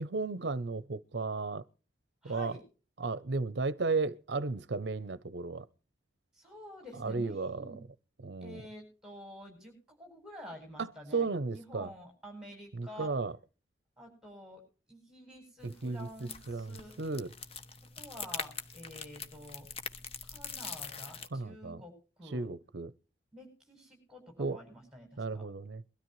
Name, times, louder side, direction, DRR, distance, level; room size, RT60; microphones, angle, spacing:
voice 1, 0.0-1.6 2.2-2.5 3.0-5.7 7.0-7.7 8.2-8.6 10.8-11.9 12.7-13.3 15.6-16.1 16.5-17.3 21.3-21.8 22.3-22.9 24.4-24.6 25.2-25.8, right 3 dB, 65° right, 0.6 m, -34 dB
voice 2, 2.2-2.6 6.3-7.8 8.4-13.1 14.0-14.6 14.9-16.9 18.0-19.7 20.2-22.5 23.3-25.1 25.3-25.5, equal, 5° right, 8.0 m, -49 dB
sound 1, 15.6-21.3, left 5 dB, 30° left, 1.1 m, -43 dB
22.5 x 13.0 x 3.1 m
head